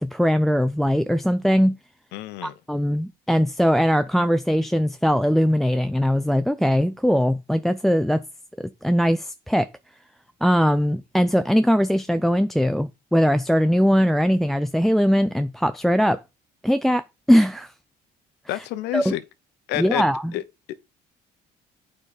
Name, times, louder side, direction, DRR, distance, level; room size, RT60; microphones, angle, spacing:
voice 1, 0.0-1.8 2.4-8.2 8.6-9.7 10.4-16.2 16.6-17.7 18.5-18.6 18.9-19.1 19.8-20.3, equal, ahead, 0.4 m, -20 dB
voice 2, 2.1-2.5 18.5-19.2 19.7-20.4, left 14 dB, 85° left, 0.8 m, -28 dB
8.7 x 4.9 x 4.1 m
cardioid pair, 110°, 17 cm